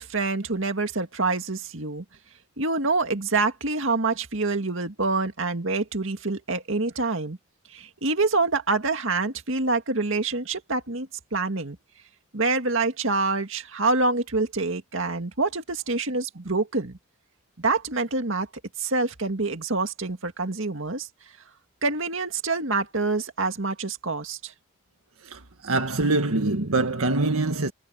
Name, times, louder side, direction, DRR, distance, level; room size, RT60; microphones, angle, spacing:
voice 1, 0.0-2.0 2.6-7.4 7.7-11.8 12.3-17.0 17.6-18.5 18.8-21.1 21.8-24.5, right 3 dB, 60° right, 2.2 m, -26 dB
voice 2, 25.3-27.7, right 2 dB, 80° right, 1.7 m, -24 dB
head